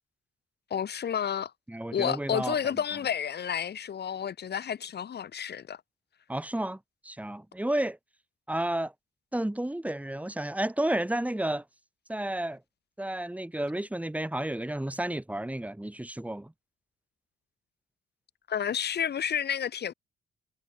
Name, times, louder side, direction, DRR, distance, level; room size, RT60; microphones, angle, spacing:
voice 1, 0.7-1.5 1.9-5.8 18.5-19.9, left 8 dB, 55° left, 5.0 m, -30 dB
voice 2, 1.7-2.6 6.3-8.0 8.5-8.9 9.3-11.6 12.1-12.6 13.0-16.5, right 1 dB, 5° right, 7.1 m, -31 dB
cardioid pair, 90°, 20 cm